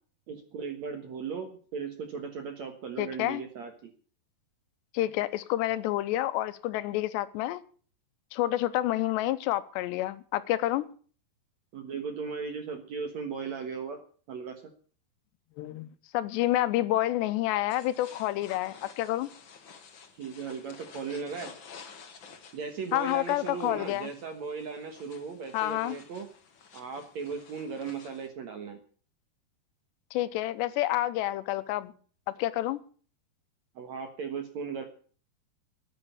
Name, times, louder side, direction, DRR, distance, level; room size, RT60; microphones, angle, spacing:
voice 1, 0.3-3.9 11.7-14.0 14.3-14.6 20.2-21.5 22.5-26.3 26.7-28.8 33.8-34.8, right 5 dB, 60° right, 6 dB, 2.0 m, -37 dB
voice 2, 3.0-3.4 4.9-7.6 8.3-10.9 15.6-15.9 16.1-19.3 22.9-24.1 25.5-26.0 30.1-31.9 32.3-32.8, left 15 dB, 85° left, 13 dB, 3.0 m, -29 dB
sound 1, 17.7-28.3, left 6 dB, 60° left, 1.2 m, -52 dB
13.5 x 9.4 x 8.4 m, 0.43 s
omnidirectional pair, 4.9 m